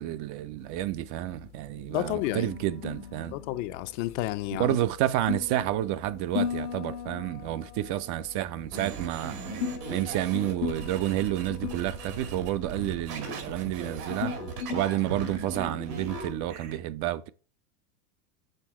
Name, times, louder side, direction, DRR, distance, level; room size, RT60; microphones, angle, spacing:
voice 1, 0.0-3.4 4.5-9.4 9.9-14.4 14.7-17.3, right 13 dB, 45° right, 0.4 m, -30 dB
sound 1, 0.6-16.7, left 7 dB, 75° left, 1.2 m, -39 dB
voice 2, 1.9-2.5 3.3-4.8, left 15 dB, 55° left, 0.6 m, -31 dB
sound 2, 8.7-16.8, right 4 dB, 85° right, 2.2 m, -38 dB
6.6 x 3.5 x 4.6 m
supercardioid pair, 115°, 45 cm